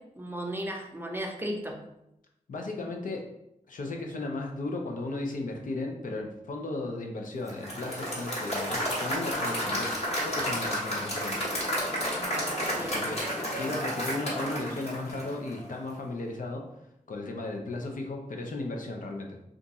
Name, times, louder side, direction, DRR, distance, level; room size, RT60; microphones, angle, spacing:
voice 1, 0.0-1.8 12.8-13.0, equal, 15° right, 1 dB, 0.6 m, -35 dB
voice 2, 2.5-3.3 3.7-9.9 10.2-11.4 12.8-16.7 17.1-19.4, left 2 dB, 70° left, 1 dB, 0.6 m, -35 dB
Applause / Crowd, 7.5-15.6, equal, 45° left, 1.4 m, -31 dB
2.5 x 2.3 x 4.0 m, 0.83 s
cardioid pair, 55°, 14 cm